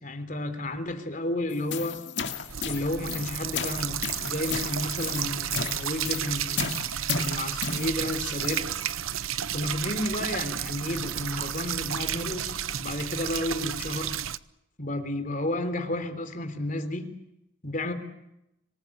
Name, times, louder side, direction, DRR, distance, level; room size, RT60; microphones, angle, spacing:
voice 1, 0.0-2.0 2.6-6.7 7.1-8.6 9.5-14.1 14.8-17.1 17.6-17.9, left 1 dB, 40° left, 8 dB, 3.4 m, -32 dB
sound 1, 1.5-8.7, left 5 dB, 60° left, 2.4 m, -34 dB
sound 2, 2.5-14.4, right 10 dB, 90° right, 0.9 m, -32 dB
26.0 x 19.5 x 8.5 m, 0.84 s
head